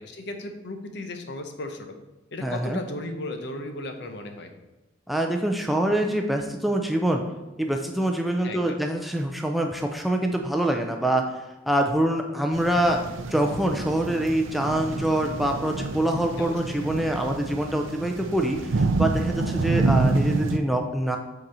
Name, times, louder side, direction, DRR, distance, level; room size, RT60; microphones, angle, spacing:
voice 1, 0.0-1.9 2.3-4.5 8.4-8.8 16.4-16.8, left 2 dB, 60° left, 5 dB, 0.8 m, -36 dB
voice 2, 2.4-2.8 5.1-7.2 7.6-11.2 11.7-13.0 13.3-21.2, right 1 dB, ahead, 2 dB, 0.4 m, -25 dB
sound 1, 12.5-20.6, right 3 dB, 90° right, 0.5 m, -28 dB
8.0 x 4.0 x 4.2 m, 1.0 s
head